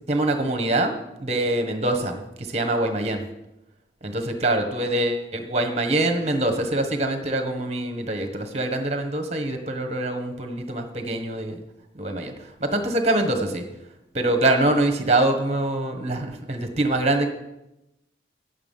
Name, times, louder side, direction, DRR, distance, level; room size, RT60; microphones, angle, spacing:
voice 1, 0.1-0.9 1.2-3.2 4.0-11.6 12.0-13.6 14.1-17.3, right 2 dB, 35° right, 6 dB, 1.4 m, -24 dB
10.5 x 8.4 x 5.5 m, 0.92 s
head